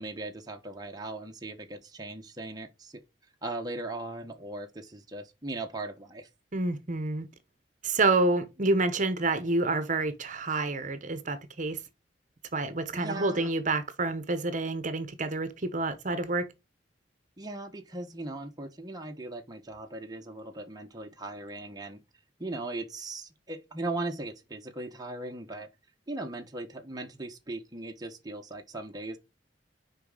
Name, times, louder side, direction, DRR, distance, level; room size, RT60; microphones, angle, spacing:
voice 1, 0.0-3.0 3.4-6.3 12.9-13.5 17.4-22.0 22.4-25.7 26.1-29.2, right 2 dB, 20° right, 1.0 m, -38 dB
voice 2, 6.5-7.3 7.8-11.8 12.5-16.5, right 2 dB, 45° right, 1.0 m, -28 dB
6.7 x 4.9 x 3.9 m
head